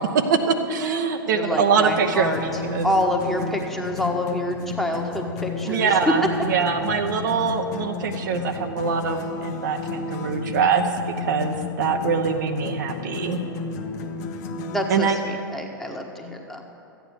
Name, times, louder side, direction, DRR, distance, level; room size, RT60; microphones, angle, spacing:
voice 1, 0.1-2.9 5.6-10.8 11.2-13.4 14.9-15.3, right 5 dB, 55° right, 5 dB, 0.9 m, -23 dB
voice 2, 1.3-2.4 2.8-5.9 14.7-16.6, left 1 dB, ahead, 1 dB, 1.3 m, -27 dB
sound 1, 1.9-15.0, left 4 dB, 50° left, 1.0 m, -33 dB
13.5 x 9.3 x 6.2 m, 2.7 s
figure-of-eight pair, 95°, 12 cm